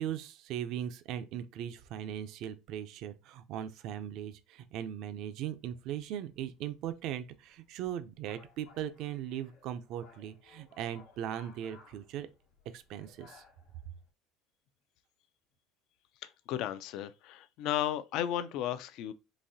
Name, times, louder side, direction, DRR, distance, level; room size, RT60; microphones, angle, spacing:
voice 1, 0.0-12.3 12.7-13.4, right 10 dB, 60° right, 0.4 m, -39 dB
sound 1, 5.6-14.1, left 5 dB, 80° left, 1.1 m, -61 dB
voice 2, 16.2-19.1, left 11 dB, 65° left, 0.4 m, -34 dB
4.0 x 2.6 x 2.7 m
supercardioid pair, 120°, 0 cm